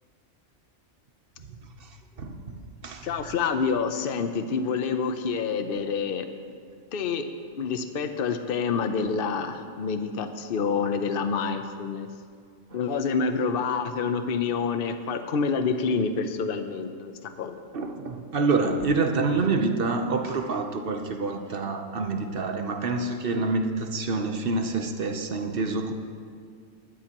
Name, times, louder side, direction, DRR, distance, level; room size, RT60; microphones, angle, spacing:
voice 1, 2.2-2.6 2.8-3.1 12.7-12.8 17.7-25.9, right 3 dB, 50° right, 5 dB, 1.0 m, -27 dB
voice 2, 3.0-6.3 6.9-12.1 12.7-17.5, left 5 dB, 50° left, 8 dB, 0.9 m, -27 dB
19.5 x 12.5 x 3.0 m, 2.1 s
omnidirectional pair, 1.3 m